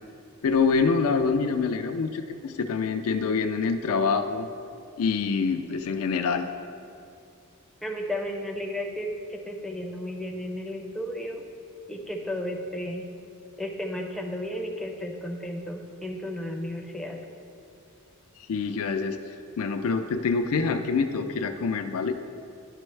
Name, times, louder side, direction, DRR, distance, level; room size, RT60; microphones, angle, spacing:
voice 1, 0.4-4.5 5.0-6.5 18.5-19.2 19.6-22.1, left 5 dB, 70° left, 6 dB, 0.4 m, -25 dB
voice 2, 7.8-11.4 11.9-13.1 13.6-17.2, left 1 dB, ahead, 1 dB, 0.5 m, -33 dB
10.5 x 5.3 x 3.2 m, 2.4 s
head